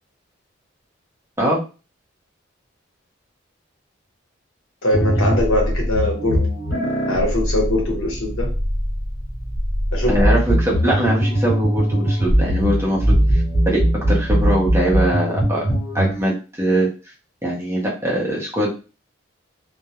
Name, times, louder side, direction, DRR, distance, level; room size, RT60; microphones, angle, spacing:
voice 1, 4.8-6.5 7.1-8.5 9.9-10.2, left 1 dB, 90° left, 0 dB, 1.0 m, -21 dB
sound 1, 4.9-16.2, equal, 55° left, 1.1 m, -20 dB
voice 2, 10.1-15.6 15.9-16.9 17.4-18.7, right 1 dB, 15° right, -3 dB, 0.6 m, -22 dB
2.3 x 2.1 x 2.8 m, 0.33 s
head